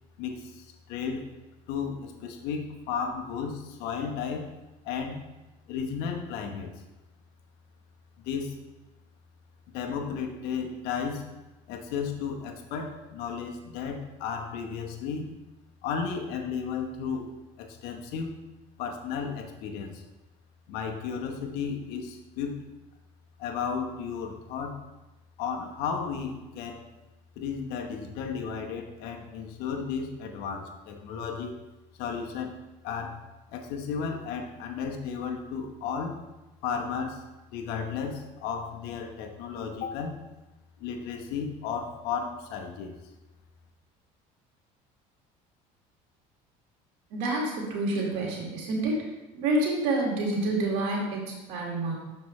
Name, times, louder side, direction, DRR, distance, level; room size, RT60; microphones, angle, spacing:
voice 1, 0.2-1.3 1.7-4.5 4.8-5.2 5.7-6.8 8.2-8.6 9.7-11.3 11.7-15.3 15.8-17.3 17.6-18.3 18.8-20.0 20.7-22.7 23.4-24.8 25.4-26.9 27.4-31.6 32.0-32.6 32.8-33.2 33.5-36.2 36.6-37.2 37.5-40.2 40.8-42.9, left 6 dB, 75° left, 4 dB, 1.0 m, -34 dB
voice 2, 47.1-49.1 49.3-51.9, right 2 dB, 80° right, -2 dB, 1.9 m, -28 dB
6.8 x 5.4 x 3.1 m, 1.1 s
supercardioid pair, 110°, 16 cm